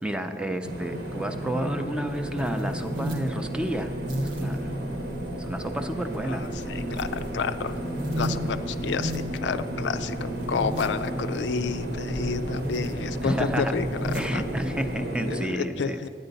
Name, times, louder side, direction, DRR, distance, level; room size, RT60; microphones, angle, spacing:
voice 1, 0.0-4.0 4.2-4.7 5.4-6.4 13.2-13.7 14.1-16.0, right 1 dB, 5° right, 6 dB, 0.4 m, -31 dB
sound 1, 0.6-15.5, right 1 dB, 60° right, 1.0 m, -33 dB
sound 2, 2.1-14.9, equal, 85° right, 1.3 m, -36 dB
voice 2, 6.7-7.1 7.3-7.7 8.2-13.9 14.3-14.4 15.3-16.1, left 5 dB, 75° left, 10 dB, 0.4 m, -30 dB
9.8 x 9.7 x 4.0 m, 2.3 s
head